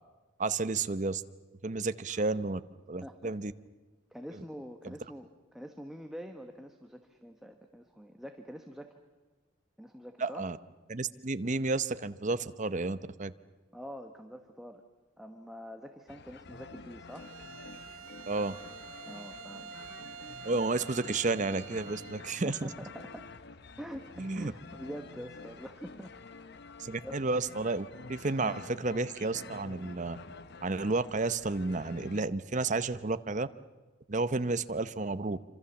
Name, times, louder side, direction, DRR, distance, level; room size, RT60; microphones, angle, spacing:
voice 1, 0.4-1.2 1.6-2.6 2.9-3.5 4.8-4.9 10.2-10.6 10.9-13.3 18.3-18.6 20.4-22.7 24.2-24.5 26.8-30.2 30.6-33.5 34.1-35.6, right 3 dB, 40° right, 13 dB, 0.8 m, -31 dB
voice 2, 3.0-3.3 4.1-8.9 9.8-10.4 13.7-14.8 15.2-17.3 19.1-19.8 22.3-23.3 23.8-26.1 27.0-27.2, equal, ahead, 5 dB, 1.2 m, -45 dB
sound 1, 16.1-32.2, left 4 dB, 55° left, 0.9 m, -49 dB
Bowed string instrument, 17.1-22.3, right 7 dB, 85° right, 1.0 m, -48 dB
26.5 x 26.0 x 7.1 m, 1.3 s
head